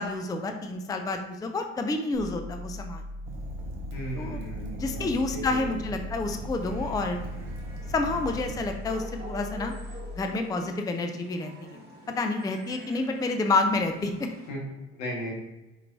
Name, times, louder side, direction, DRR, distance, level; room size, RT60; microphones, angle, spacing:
voice 1, 0.0-3.0 4.1-4.4 4.7-7.2 7.9-9.7 10.1-11.8 12.2-14.1, left 3 dB, 10° left, 5 dB, 0.4 m, -29 dB
sound 1, 2.1-10.1, left 1 dB, 30° left, 1.5 m, -39 dB
Fire, 3.2-8.7, right 2 dB, 85° right, 0.7 m, -41 dB
voice 2, 3.9-5.1 5.3-5.7 14.5-14.6 15.0-15.3, equal, 75° left, -1 dB, 1.5 m, -36 dB
sound 2, 6.2-14.5, right 1 dB, 30° right, 1.6 m, -48 dB
4.6 x 4.4 x 2.6 m, 1.0 s
supercardioid pair, 80°, 34 cm